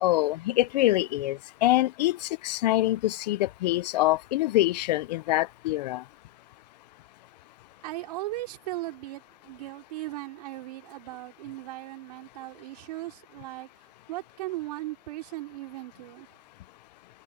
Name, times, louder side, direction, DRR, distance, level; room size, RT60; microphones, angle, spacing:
voice 1, 0.0-6.0, left 16 dB, 85° left, 0.5 m, -25 dB
voice 2, 7.8-13.7 14.1-16.3, right 18 dB, 70° right, 4.3 m, -37 dB
supercardioid pair, 155°, 21 cm